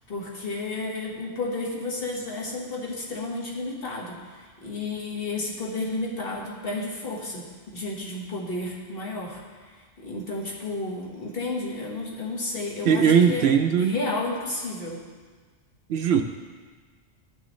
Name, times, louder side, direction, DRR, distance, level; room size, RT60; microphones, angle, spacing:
voice 1, 0.1-7.4 7.7-9.4 10.0-13.5 13.8-15.0, left 2 dB, 55° left, -3 dB, 1.6 m, -32 dB
voice 2, 12.9-14.0 15.9-16.2, right 7 dB, 70° right, 5 dB, 0.8 m, -19 dB
13.5 x 6.3 x 3.1 m, 1.5 s
omnidirectional pair, 1.2 m